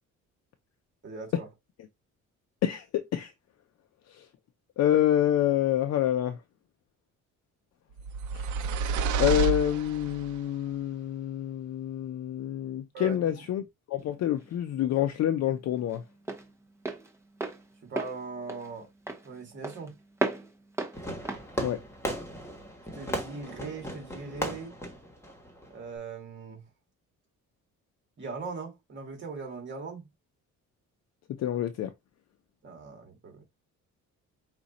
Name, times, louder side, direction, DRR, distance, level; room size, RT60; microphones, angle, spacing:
voice 1, 1.0-1.5 12.9-13.4 17.8-18.9 19.2-20.0 23.0-24.7 25.7-26.6 28.2-30.1 32.6-33.4, right 4 dB, 40° right, 1.9 m, -40 dB
voice 2, 2.6-3.3 4.1-4.2 4.8-6.4 8.3-8.4 9.2-16.0 21.6-21.8 31.4-31.9, left 11 dB, 55° left, 0.6 m, -27 dB
sound 1, 8.0-10.4, right 5 dB, 70° right, 0.6 m, -29 dB
Walk footsteps, 14.0-22.7, right 2 dB, 10° right, 0.8 m, -37 dB
Fireworks, 20.9-26.0, equal, 10° left, 1.2 m, -37 dB
4.9 x 2.4 x 4.1 m
cardioid pair, 160°, 30 cm